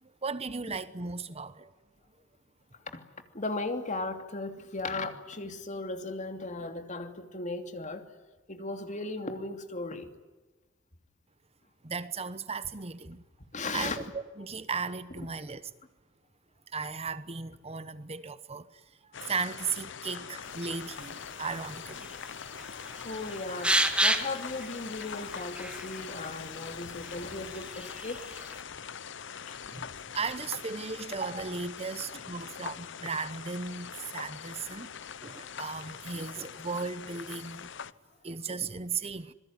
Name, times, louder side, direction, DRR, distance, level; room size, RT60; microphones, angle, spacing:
voice 1, 0.0-1.7 11.8-13.2 13.7-15.6 16.7-22.1 29.7-34.9 35.2-37.7 38.2-39.3, right 4 dB, 30° right, 1.0 m, -36 dB
voice 2, 3.3-8.0 8.5-10.1 13.5-14.0 20.1-20.2 23.0-23.7 24.0-28.2 29.5-29.6 32.1-32.2, left 2 dB, 40° left, 2.9 m, -36 dB
sound 1, 19.1-37.9, left 7 dB, 65° left, 0.9 m, -43 dB
sound 2, 20.4-28.6, right 1 dB, 5° right, 2.2 m, -34 dB
27.0 x 21.5 x 9.7 m
head